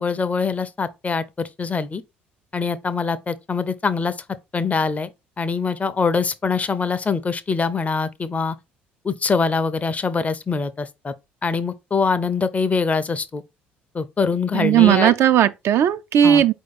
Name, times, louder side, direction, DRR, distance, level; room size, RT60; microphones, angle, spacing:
voice 1, 0.0-2.0 2.5-4.1 4.5-5.1 5.4-8.6 9.0-11.1 11.4-13.4 13.9-15.1 16.2-16.4, left 5 dB, 25° left, 0.5 m, -23 dB
voice 2, 14.5-16.5, right 10 dB, 50° right, 0.3 m, -16 dB
4.7 x 2.7 x 4.0 m
figure-of-eight pair, 55°, 6 cm